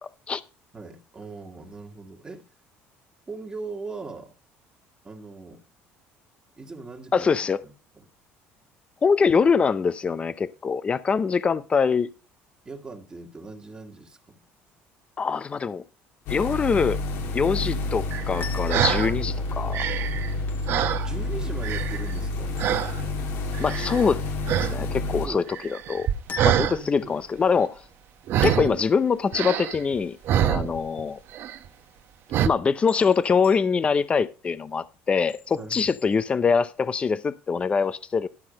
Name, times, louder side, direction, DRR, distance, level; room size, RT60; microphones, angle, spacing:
voice 1, 0.0-0.4 7.1-7.6 9.0-12.1 15.2-15.8 16.3-17.0 17.3-19.8 23.6-24.2 24.6-25.4 25.7-26.1 26.4-27.7 28.4-30.2 30.4-31.2 32.5-38.3, left 5 dB, 25° left, 0.6 m, -23 dB
voice 2, 0.7-2.4 3.3-4.3 5.0-5.6 6.6-7.3 7.6-8.0 12.6-14.4 20.9-22.5 25.1-25.4 26.4-27.1 30.5-30.7 35.5-35.9, right 3 dB, 20° right, 1.7 m, -40 dB
sound 1, 16.3-25.3, left 2 dB, 70° left, 1.7 m, -29 dB
sound 2, 18.1-19.1 19.6-21.4 21.6-22.2 22.6-23.0 23.5-24.2 24.5-24.8 25.0-26.8 28.3-28.8 29.3-31.0 31.3-31.7 32.3-32.5, right 10 dB, 60° right, 0.9 m, -25 dB
sound 3, 18.4-36.4, left 5 dB, 45° left, 1.5 m, -45 dB
12.0 x 5.9 x 5.1 m
cardioid pair, 125°, 5 cm